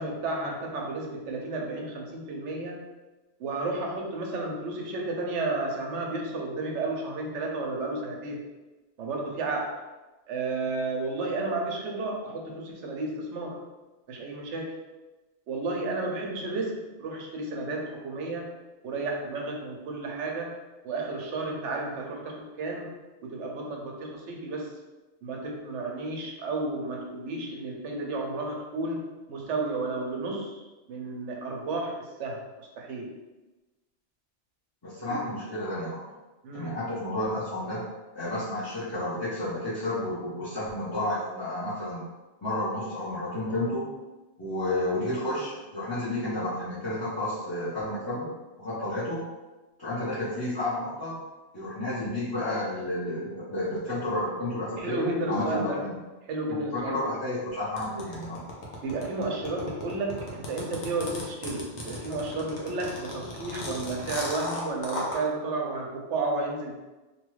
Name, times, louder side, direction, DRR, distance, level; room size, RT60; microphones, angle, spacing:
voice 1, 0.0-2.8 3.4-8.4 9.0-9.7 10.3-13.6 14.1-14.8 15.5-18.5 18.8-20.6 20.8-23.0 23.2-24.7 25.2-30.6 30.9-32.5 32.8-33.1 35.1-35.2 36.4-36.8 54.8-55.9 56.3-57.1 58.8-66.8, right 2 dB, 85° right, 0 dB, 0.9 m, -32 dB
voice 2, 34.8-36.0 36.5-37.8 38.1-42.0 42.4-43.9 44.4-48.3 48.6-49.2 49.8-51.1 51.5-55.9 56.5-58.4, left 1 dB, 20° left, -14 dB, 0.7 m, -31 dB
sound 1, 57.8-65.2, left 1 dB, 75° left, 1.0 m, -36 dB
2.7 x 2.3 x 3.1 m, 1.1 s
omnidirectional pair, 1.2 m